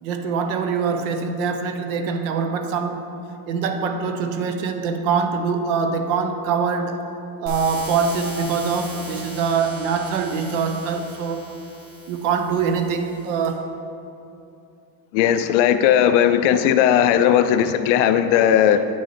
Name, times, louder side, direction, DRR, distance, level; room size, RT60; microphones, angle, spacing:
voice 1, 0.0-3.1 3.5-7.0 7.4-11.4 12.1-13.7, right 5 dB, 60° right, 7 dB, 0.8 m, -24 dB
sound 1, 7.5-13.5, equal, 20° right, 1.4 m, -39 dB
voice 2, 15.1-18.9, left 9 dB, 55° left, 10 dB, 0.5 m, -17 dB
8.9 x 6.3 x 4.2 m, 2.6 s
cardioid pair, 160°, 42 cm